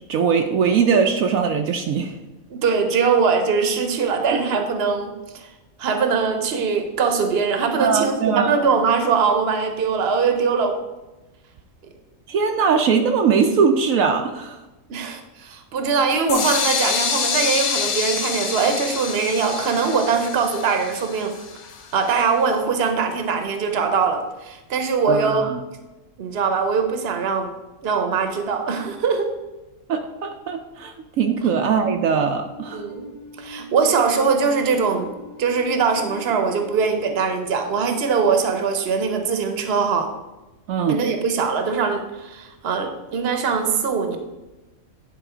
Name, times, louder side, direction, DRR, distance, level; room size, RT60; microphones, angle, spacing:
voice 1, 0.1-2.1 4.3-4.4 7.8-8.5 12.3-14.6 25.1-25.6 29.9-32.8 40.7-41.0, right 6 dB, 75° right, 4 dB, 1.0 m, -21 dB
voice 2, 2.5-5.5 5.8-10.8 14.9-21.3 21.9-25.5 26.2-27.5 27.8-29.3 32.7-33.1 33.4-35.1 35.4-40.1 40.9-44.2, right 5 dB, 50° right, 6 dB, 1.1 m, -22 dB
sound 1, 16.3-22.1, left 6 dB, 90° left, 1.3 m, -26 dB
sound 2, 32.5-39.4, left 1 dB, 30° left, 1.2 m, -42 dB
10.0 x 3.8 x 4.9 m, 1.1 s
omnidirectional pair, 1.5 m